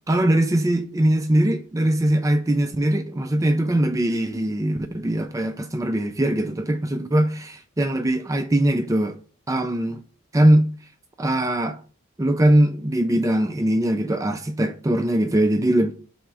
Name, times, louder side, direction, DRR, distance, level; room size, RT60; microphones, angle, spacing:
voice 1, 0.1-9.2 9.5-10.0 10.3-10.7 11.2-11.8 12.2-15.9, right 1 dB, 15° right, 0.3 m, -21 dB
3.4 x 3.1 x 4.6 m
head